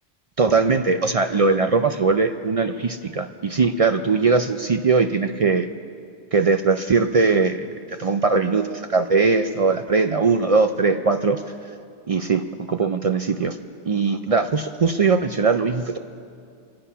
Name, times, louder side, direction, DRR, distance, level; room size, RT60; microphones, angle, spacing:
voice 1, 0.4-5.7 6.3-11.4 12.1-13.6 13.8-16.0, right 4 dB, 50° right, 7 dB, 0.4 m, -20 dB
25.0 x 8.7 x 5.6 m, 2.3 s
omnidirectional pair, 1.1 m